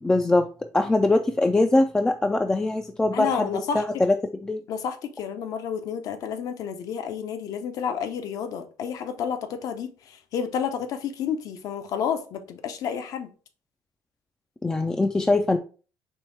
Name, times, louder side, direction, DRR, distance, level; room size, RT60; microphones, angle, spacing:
voice 1, 0.0-0.5 0.7-3.5 3.7-4.2 4.4-4.6 14.6-15.6, left 2 dB, 10° left, 0.3 m, -22 dB
voice 2, 3.1-3.8 4.7-13.3, left 7 dB, 60° left, 0.7 m, -30 dB
4.5 x 3.1 x 3.2 m
cardioid pair, 125°, 7 cm